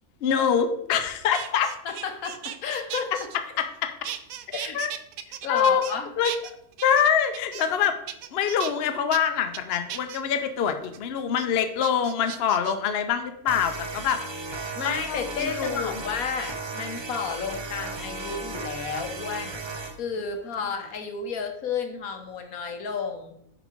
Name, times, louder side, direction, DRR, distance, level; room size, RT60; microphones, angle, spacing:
voice 1, 0.2-1.8 3.3-3.9 4.5-4.9 5.5-5.8 6.2-6.3 6.8-8.0 8.3-14.2 14.8-15.9, left 7 dB, 55° left, 8 dB, 0.8 m, -25 dB
sound 1, 1.0-3.8 4.0-6.0 6.2-7.8 8.1-8.7 9.1-9.2 9.5-10.2 10.7-11.0 11.4-11.5 11.8-12.9 13.7-14.1 15.4-15.7 16.3-16.5 17.1-17.7 19.1-20.3 20.6-20.9, right 11 dB, 85° right, 1.0 m, -38 dB
voice 2, 1.8-3.1 3.5-3.6 4.5-4.8 5.3-6.1 14.7-19.6 20.0-23.3, left 5 dB, 80° left, 6 dB, 1.5 m, -32 dB
sound 2, 13.5-20.0, right 3 dB, 35° right, 0.4 m, -35 dB
6.5 x 5.0 x 5.1 m, 0.73 s
omnidirectional pair, 1.5 m